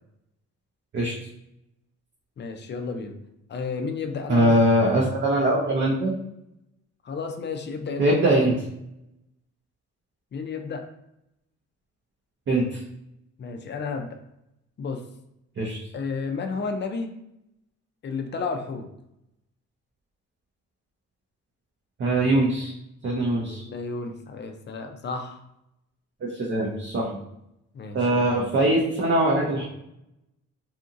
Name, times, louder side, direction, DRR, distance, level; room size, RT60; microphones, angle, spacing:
voice 1, 2.4-3.2 3.5-4.8 7.0-8.1 10.3-10.8 13.4-14.2 14.8-15.0 15.9-17.1 18.0-18.9 23.4-25.4 27.7-28.2, left 4 dB, 35° left, 5 dB, 0.4 m, -32 dB
voice 2, 4.3-6.1 8.0-8.6 12.5-12.8 15.6-15.8 22.0-22.7 23.0-23.6 26.2-27.2 27.9-29.6, right 1 dB, 40° right, -4 dB, 0.6 m, -22 dB
2.8 x 2.6 x 2.5 m, 0.82 s
cardioid pair, 90°, 30 cm